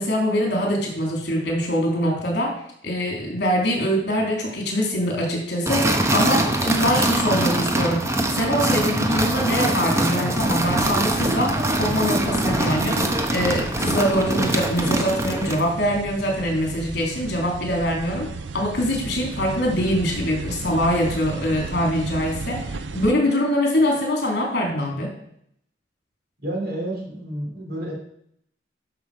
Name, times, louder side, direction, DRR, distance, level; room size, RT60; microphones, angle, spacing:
voice 1, 0.0-2.6 2.8-8.0 8.3-18.3 18.5-25.1, equal, 65° left, 0 dB, 3.2 m, -23 dB
sound 1, 5.7-15.7, right 1 dB, 15° right, 1.0 m, -23 dB
sound 2, 10.4-23.1, right 3 dB, 85° right, 0.6 m, -34 dB
voice 2, 26.4-27.9, right 1 dB, 60° right, -1 dB, 3.4 m, -30 dB
12.0 x 5.9 x 4.9 m, 0.71 s
head